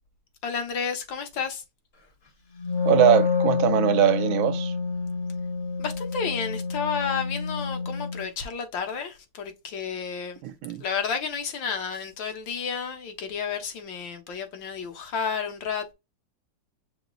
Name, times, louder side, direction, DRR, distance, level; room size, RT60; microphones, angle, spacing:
voice 1, 0.4-1.6 5.8-10.4 10.8-15.9, left 6 dB, 65° left, 1.5 m, -31 dB
Wind instrument woodwind instrument, 2.6-8.3, left 4 dB, 35° left, 1.1 m, -28 dB
voice 2, 2.9-4.7 10.4-10.8, right 11 dB, 75° right, 1.3 m, -21 dB
6.1 x 2.1 x 3.8 m
omnidirectional pair, 2.4 m